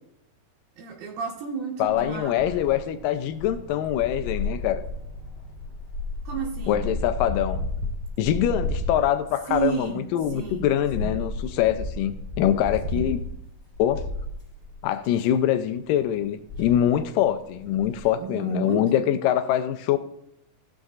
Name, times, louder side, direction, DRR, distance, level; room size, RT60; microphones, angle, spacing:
voice 1, 0.8-2.4 6.2-6.8 9.5-10.0 10.3-10.6 11.0-11.1 12.9-13.1 18.2-19.0, right 7 dB, 75° right, 2.9 m, -32 dB
voice 2, 1.8-4.8 6.7-7.6 8.2-13.2 13.8-14.0 14.8-20.0, left 11 dB, 80° left, 2.0 m, -24 dB
sound 1, 1.9-9.2 9.5-9.9 10.2-14.8 15.2-15.3 16.1-16.2 16.5-17.0 17.5-18.1, left 2 dB, 40° left, 1.0 m, -33 dB
16.0 x 6.4 x 2.4 m
omnidirectional pair, 4.2 m